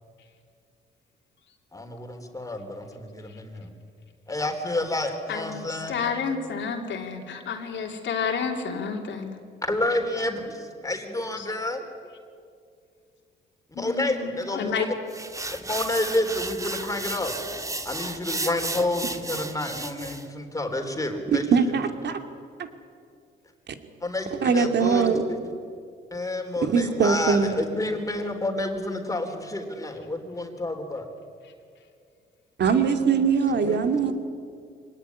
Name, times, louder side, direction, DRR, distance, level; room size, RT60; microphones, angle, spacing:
voice 1, 1.7-3.7 4.3-6.2 9.6-11.9 13.8-14.8 15.7-17.3 17.8-21.5 24.0-25.2 26.1-31.1 33.5-33.9, left 1 dB, 15° left, 5 dB, 4.0 m, -29 dB
voice 2, 5.3-9.3 11.4-11.5 13.7-14.9, left 6 dB, 70° left, 2 dB, 3.3 m, -30 dB
sound 1, 15.1-20.3, right 2 dB, 15° right, 1.7 m, -33 dB
voice 3, 21.3-22.2 22.6-22.7 23.7-23.8 24.4-25.2 26.6-27.5 32.6-34.1, right 6 dB, 60° right, 6 dB, 2.5 m, -22 dB
25.0 x 19.0 x 10.0 m, 2.3 s
cardioid pair, 90°, 20 cm